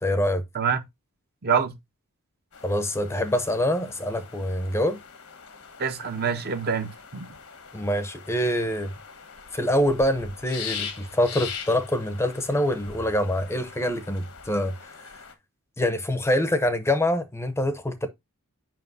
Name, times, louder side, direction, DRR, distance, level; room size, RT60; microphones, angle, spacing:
voice 1, 0.0-0.4 2.6-5.0 7.7-8.9 9.5-15.1 15.8-18.1, left 1 dB, 10° left, 0.6 m, -25 dB
voice 2, 1.4-1.7 5.8-7.3, right 6 dB, 45° right, 0.7 m, -26 dB
sound 1, 2.5-15.3, left 6 dB, 70° left, 1.2 m, -42 dB
7.6 x 5.3 x 2.5 m
head